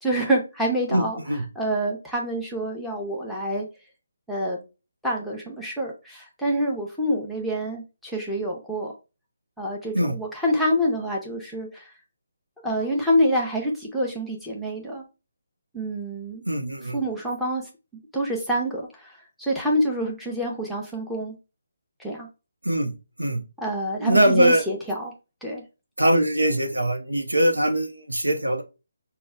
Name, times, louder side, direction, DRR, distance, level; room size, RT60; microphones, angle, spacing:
voice 1, 0.0-1.2 1.5-3.6 4.3-4.6 5.0-8.9 9.6-11.9 12.6-15.0 15.7-16.4 16.9-17.6 18.1-21.3 22.0-22.3 23.6-25.1 25.4-25.6, equal, ahead, -4 dB, 0.8 m, -26 dB
voice 2, 0.9-1.4 9.9-10.1 16.5-17.0 22.6-22.9 23.2-23.4 24.0-24.6 26.0-28.6, right 1 dB, 85° right, 4 dB, 0.9 m, -22 dB
5.1 x 2.3 x 2.3 m, 0.29 s
figure-of-eight pair, 145°, 0 cm